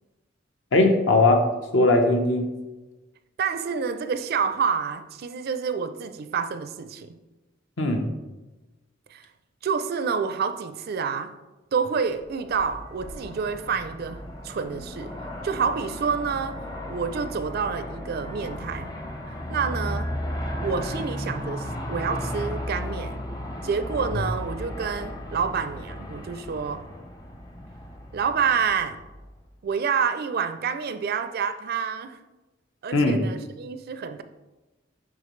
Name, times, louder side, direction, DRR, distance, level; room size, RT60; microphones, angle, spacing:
voice 1, 0.7-1.4 1.7-2.5 7.8-8.0 32.9-33.2, left 2 dB, 70° left, 1.0 m, -19 dB
voice 2, 3.4-7.2 9.1-9.3 9.6-11.3 11.7-15.2 15.4-16.6 16.9-18.9 19.5-20.1 20.6-23.2 23.6-26.9 28.1-29.0 29.6-32.2 32.8-34.2, right 6 dB, 50° right, 0.4 m, -28 dB
Aircraft, 12.3-29.5, equal, 20° left, 0.7 m, -35 dB
10.5 x 3.7 x 3.1 m
head